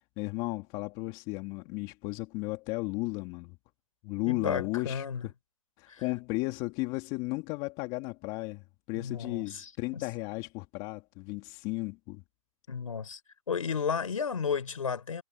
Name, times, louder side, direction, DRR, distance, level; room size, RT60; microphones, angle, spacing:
voice 1, 0.2-3.6 4.0-5.3 5.8-12.2, left 23 dB, 25° left, 2.3 m, -34 dB
voice 2, 4.3-5.3 5.9-6.0 8.9-10.0 12.7-13.2 13.5-15.2, left 6 dB, 80° left, 3.8 m, -33 dB
hypercardioid pair, 150°, 17 cm